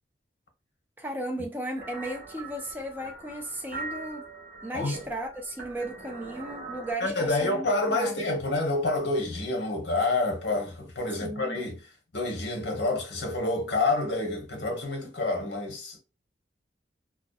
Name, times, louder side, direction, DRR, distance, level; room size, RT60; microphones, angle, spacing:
voice 1, 1.0-4.3 4.6-8.2 11.2-11.6, right 1 dB, 10° right, 0.5 m, -35 dB
sound 1, 1.8-6.9, right 3 dB, 50° right, 0.9 m, -42 dB
voice 2, 4.7-5.0 7.0-11.8 12.1-16.0, left 2 dB, 75° left, 0.8 m, -28 dB
2.6 x 2.2 x 2.2 m
head